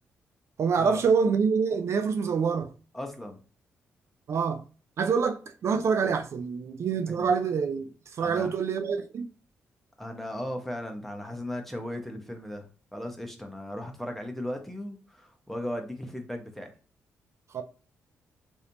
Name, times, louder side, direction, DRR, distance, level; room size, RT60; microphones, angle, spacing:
voice 1, 0.6-2.7 4.3-4.6 5.0-9.3 17.5-17.6, right 5 dB, 60° right, 0.4 m, -26 dB
voice 2, 2.9-3.4 7.1-7.3 8.2-8.5 10.0-12.7 12.9-16.7, left 1 dB, 5° left, 1.0 m, -36 dB
3.1 x 2.7 x 2.8 m
supercardioid pair, 55°, 5 cm